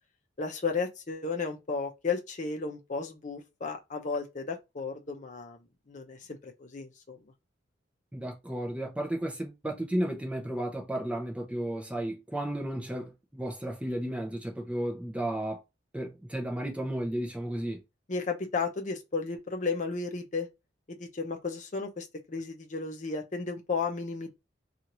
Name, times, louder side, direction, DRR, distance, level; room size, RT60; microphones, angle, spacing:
voice 1, 0.4-5.6 5.9-7.2 18.1-20.5 20.9-24.3, left 4 dB, 40° left, 0.6 m, -34 dB
voice 2, 8.1-15.6 15.9-17.8, right 1 dB, 5° right, 0.6 m, -33 dB
2.7 x 2.4 x 2.9 m
head